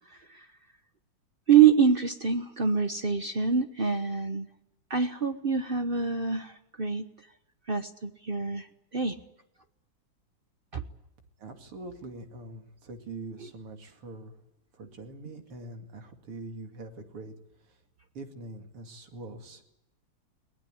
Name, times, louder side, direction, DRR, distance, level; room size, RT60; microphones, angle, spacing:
voice 1, 1.5-4.5 4.9-7.1 7.7-8.7 8.9-9.2 10.7-10.8, right 7 dB, 45° right, 9 dB, 0.7 m, -25 dB
voice 2, 11.4-14.3 14.7-17.3 17.6-17.8 18.1-19.6, right 2 dB, 85° right, 5 dB, 3.4 m, -43 dB
22.5 x 20.0 x 9.1 m, 0.89 s
omnidirectional pair, 2.4 m